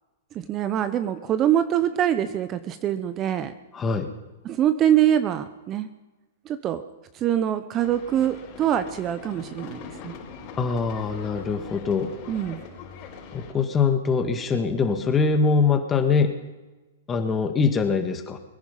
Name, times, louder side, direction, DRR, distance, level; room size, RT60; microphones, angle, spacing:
voice 1, 0.3-3.5 4.4-5.9 6.5-6.8 7.1-10.1 12.3-12.6, right 10 dB, 30° right, 11 dB, 0.9 m, -24 dB
voice 2, 3.7-4.1 10.6-12.1 13.3-16.4 17.1-18.4, left 5 dB, 20° left, 6 dB, 1.9 m, -23 dB
sound 1, 7.8-13.5, left 5 dB, 40° left, 5.3 m, -42 dB
22.5 x 10.5 x 5.5 m, 1.1 s
hypercardioid pair, 125°, 0 cm